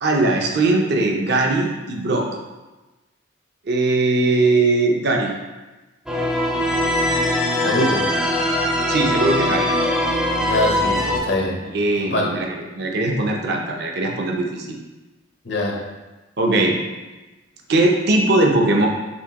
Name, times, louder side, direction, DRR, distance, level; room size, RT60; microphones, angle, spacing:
voice 1, 0.0-2.3 3.7-5.3 8.9-9.7 11.5-14.8 16.4-16.8 17.7-18.9, right 2 dB, 55° right, 1 dB, 0.5 m, -20 dB
sound 1, 6.1-11.2, left 1 dB, 5° right, 0.5 m, -21 dB
voice 2, 7.6-8.0 10.4-11.6 12.0-12.3 15.4-15.8, left 1 dB, 60° left, -1 dB, 0.8 m, -23 dB
4.3 x 3.3 x 2.9 m, 1.1 s
head